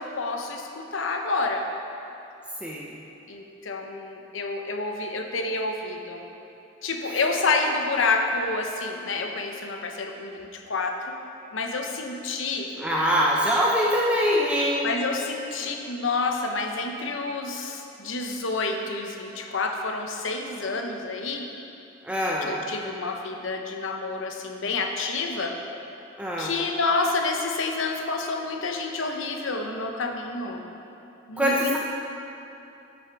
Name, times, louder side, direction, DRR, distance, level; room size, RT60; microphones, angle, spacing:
voice 1, 0.0-1.7 3.3-6.2 6.8-11.2 11.5-12.7 14.8-21.5 22.4-25.6 26.4-30.7 31.3-31.8, left 3 dB, 75° left, 3 dB, 0.9 m, -28 dB
voice 2, 2.6-3.0 7.1-7.2 12.8-14.9 22.0-22.6 26.2-26.5 31.4-31.8, equal, 5° right, -4 dB, 0.6 m, -24 dB
11.0 x 6.1 x 4.7 m, 2.9 s
head